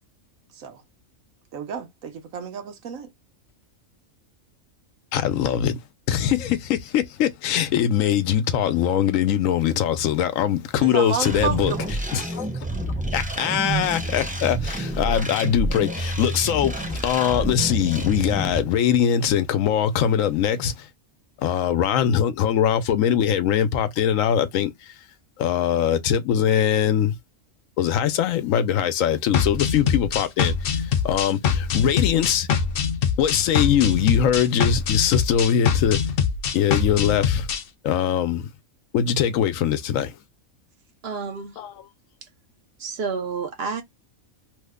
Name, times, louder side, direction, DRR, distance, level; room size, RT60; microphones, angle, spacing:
voice 1, 1.5-3.1 10.8-11.9, right 6 dB, 80° right, 1.2 m, -31 dB
voice 2, 5.1-5.8 6.1-11.7 12.1-12.7 13.1-20.9 21.4-24.9 25.4-27.2 27.8-32.5 33.2-36.0 36.5-37.5 37.8-38.5 38.9-40.2 41.6-41.9, left 9 dB, 80° left, 1.0 m, -22 dB
sound 1, 11.2-18.6, right 1 dB, 10° right, 0.4 m, -28 dB
sound 2, 29.3-37.6, left 7 dB, 60° left, 0.6 m, -23 dB
voice 3, 41.0-41.6 42.8-43.8, right 5 dB, 55° right, 0.8 m, -29 dB
3.1 x 2.1 x 3.5 m
omnidirectional pair, 1.4 m